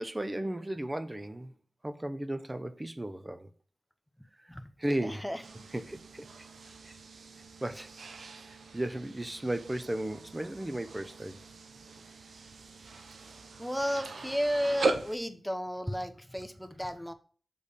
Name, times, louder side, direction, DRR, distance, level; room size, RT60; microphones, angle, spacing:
voice 1, 0.0-1.5 1.8-3.5 4.4-4.5 4.8-5.2 5.7-6.3 6.8-6.9 7.6-7.9 8.7-11.4, right 1 dB, 25° right, 0.7 m, -35 dB
voice 2, 5.0-5.4 13.6-17.1, equal, 5° left, 0.8 m, -33 dB
sound 1, 5.4-15.2, right 3 dB, 90° right, 0.7 m, -40 dB
6.5 x 3.4 x 5.2 m
cardioid pair, 60°, 0 cm